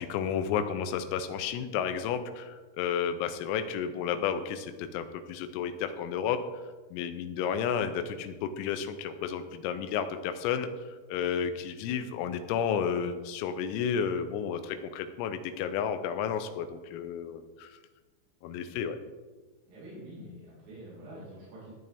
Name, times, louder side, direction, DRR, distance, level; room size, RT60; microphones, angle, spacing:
voice 1, 0.0-6.4 6.9-10.7 11.1-17.8 18.4-19.0, left 7 dB, 85° left, 9 dB, 3.5 m, -32 dB
voice 2, 19.7-21.7, equal, 80° right, -9 dB, 6.6 m, -46 dB
14.0 x 9.4 x 3.5 m, 1.3 s
omnidirectional pair, 5.9 m